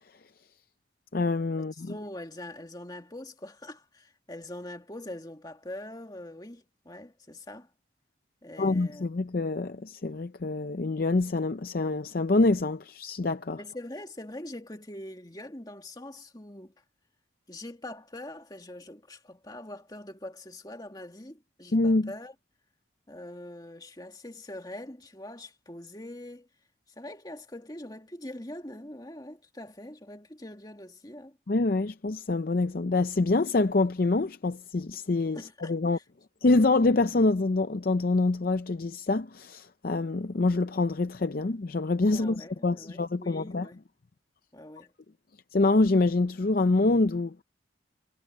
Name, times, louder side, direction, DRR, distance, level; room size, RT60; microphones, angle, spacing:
voice 1, 1.1-1.9 8.6-13.6 21.7-22.1 31.5-36.0 36.4-43.7 45.5-47.3, left 2 dB, 50° left, 0.5 m, -26 dB
voice 2, 1.7-7.7 8.4-9.1 13.6-16.7 17.5-22.3 23.1-26.5 27.0-31.4 35.3-36.0 42.1-43.8 44.5-44.9, left 1 dB, 20° left, 2.2 m, -43 dB
head